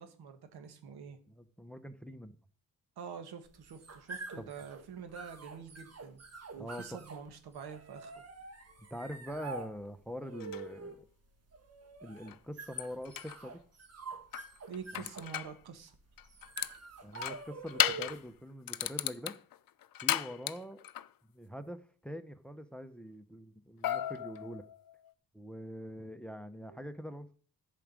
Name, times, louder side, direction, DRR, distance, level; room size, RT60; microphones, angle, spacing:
voice 1, 0.0-1.2 3.0-6.2 6.5-8.2 14.7-15.9 26.7-26.8, right 6 dB, 90° right, 8 dB, 1.6 m, -46 dB
voice 2, 1.3-2.4 4.4-4.5 6.6-7.0 8.9-11.0 12.0-13.6 14.9-15.1 17.0-19.3 20.0-20.8 21.3-24.6 25.3-27.4, equal, 5° left, 11 dB, 0.8 m, -44 dB
sound 1, 3.5-18.4, right 4 dB, 40° right, 1.6 m, -47 dB
sound 2, 10.4-10.7 12.3-12.4 12.8-13.4 14.3-15.6 16.2-16.8 17.2-18.2 18.7-21.1 23.8-25.1, left 12 dB, 65° left, 0.6 m, -35 dB
10.5 x 5.1 x 7.5 m, 0.43 s
cardioid pair, 100°, 37 cm